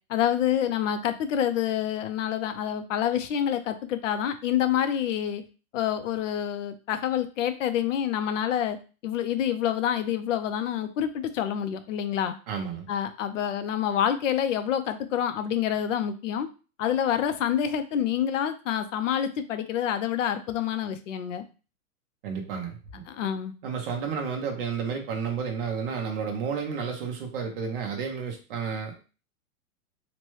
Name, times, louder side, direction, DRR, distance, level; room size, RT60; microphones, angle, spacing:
voice 1, 0.1-5.4 5.7-8.8 9.0-12.4 12.9-16.5 16.8-21.4 23.1-23.5, left 9 dB, 55° left, 9 dB, 0.5 m, -27 dB
voice 2, 12.5-12.9 22.2-23.0 23.6-28.9, right 6 dB, 40° right, 2 dB, 0.7 m, -31 dB
3.0 x 2.2 x 3.0 m, 0.34 s
hypercardioid pair, 160°, 45 cm